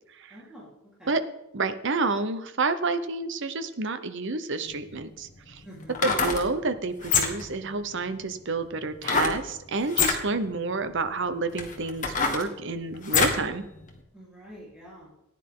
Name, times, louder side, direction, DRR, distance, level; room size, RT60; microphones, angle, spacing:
voice 1, 0.3-0.7 1.0-1.2 5.6-6.1 14.1-15.1, equal, 5° right, -7 dB, 3.7 m, -46 dB
voice 2, 1.5-5.6 6.0-13.6, right 3 dB, 55° right, 11 dB, 0.8 m, -29 dB
sound 1, 4.7-4.8 5.8-6.4 7.0-7.5 9.0-9.4 9.9-10.2 10.9-11.0 11.6-13.4 13.9-14.0, left 5 dB, 35° left, 1.6 m, -25 dB
14.5 x 10.0 x 3.8 m, 0.86 s
head